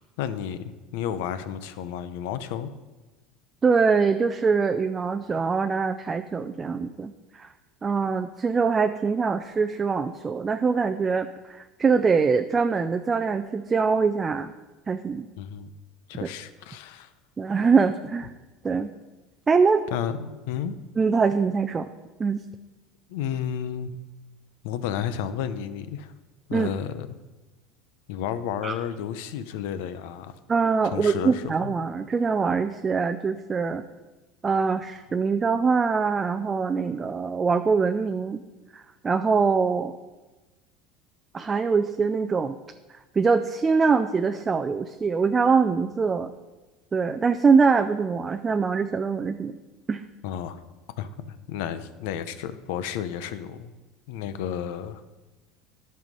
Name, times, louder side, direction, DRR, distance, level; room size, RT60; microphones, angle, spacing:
voice 1, 0.2-2.7 15.4-15.7 16.1-17.1 19.9-20.8 23.1-24.0 24.6-26.1 26.5-27.1 28.1-30.3 30.9-31.7 50.2-50.6 51.0-53.7 54.1-55.0, left 9 dB, 80° left, 13 dB, 0.6 m, -32 dB
voice 2, 3.6-7.5 7.8-14.5 14.9-15.3 17.4-18.3 18.6-18.9 19.5-19.8 21.0-21.9 22.2-22.4 26.5-26.7 28.6-28.7 30.5-33.8 34.4-38.4 38.7-39.9 41.3-42.6 43.2-46.3 46.9-49.6 49.9-50.0, right 5 dB, 20° right, 8 dB, 0.4 m, -23 dB
11.0 x 5.6 x 5.3 m, 1.2 s
supercardioid pair, 135°, 0 cm